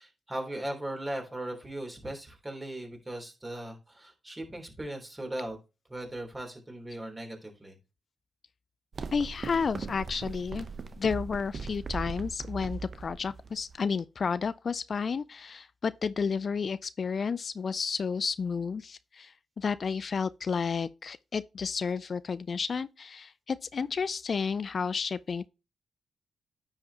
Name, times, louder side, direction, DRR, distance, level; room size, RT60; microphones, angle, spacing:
voice 1, 0.0-5.6 5.9-7.7, right 1 dB, 20° right, 3.3 m, -38 dB
sound 1, 8.9-14.0, right 4 dB, 50° right, 0.8 m, -39 dB
voice 2, 9.1-10.7 11.0-25.5, left 5 dB, 55° left, 0.3 m, -31 dB
9.8 x 5.5 x 2.9 m
supercardioid pair, 45°, 0 cm